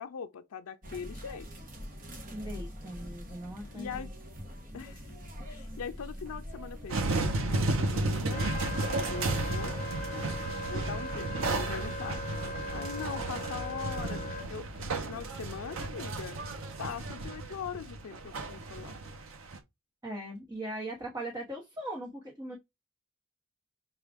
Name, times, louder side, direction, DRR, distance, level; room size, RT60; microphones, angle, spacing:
voice 1, 0.0-1.5 3.7-4.1 4.7-5.0 5.5-8.5 9.0-9.8 10.6-12.2 12.7-16.4 16.8-19.0, left 6 dB, 90° left, 0.5 m, -41 dB
sound 1, 0.8-7.3, equal, 40° right, 1.0 m, -44 dB
voice 2, 2.3-4.1 20.0-22.6, right 1 dB, 15° right, 0.9 m, -39 dB
sound 2, 6.9-19.6, right 2 dB, 70° right, 0.7 m, -33 dB
Wind instrument woodwind instrument, 8.3-14.5, left 2 dB, 40° left, 0.7 m, -40 dB
5.9 x 2.3 x 3.4 m
head